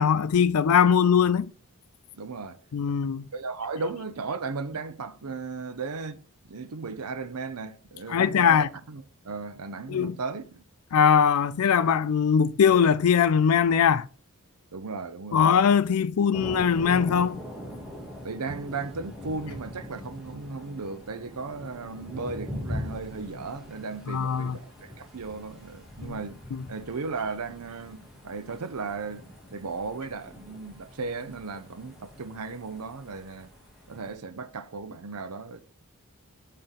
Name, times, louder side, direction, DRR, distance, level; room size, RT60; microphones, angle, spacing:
voice 1, 0.0-1.5 2.7-3.3 8.1-8.7 9.9-10.2 10.9-14.1 15.3-17.4 24.1-24.6 26.0-26.1 26.5-26.6, left 7 dB, 75° left, 0.4 m, -21 dB
voice 2, 2.1-2.6 3.3-10.6 14.7-15.5 18.2-26.4 26.7-33.5 33.9-35.6, right 4 dB, 90° right, 0.7 m, -36 dB
Thunder, 16.3-34.1, equal, ahead, 2.0 m, -42 dB
5.1 x 4.4 x 5.6 m
head